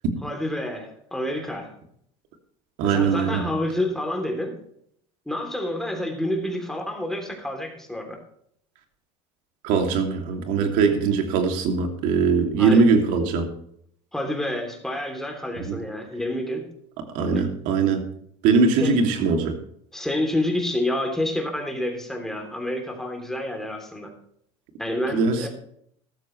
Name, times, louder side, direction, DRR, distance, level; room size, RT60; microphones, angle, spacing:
voice 1, 0.2-1.7 2.8-4.6 5.3-8.2 12.6-12.8 14.1-16.7 17.3-17.5 18.8-19.0 19.9-24.1 24.8-25.5, left 1 dB, 5° left, 3 dB, 3.2 m, -28 dB
voice 2, 2.8-3.4 9.6-13.5 15.6-15.8 17.1-18.0 18.4-19.5 25.1-25.5, right 4 dB, 65° right, 4 dB, 2.8 m, -21 dB
14.0 x 13.5 x 3.3 m, 0.67 s
supercardioid pair, 125°, 14 cm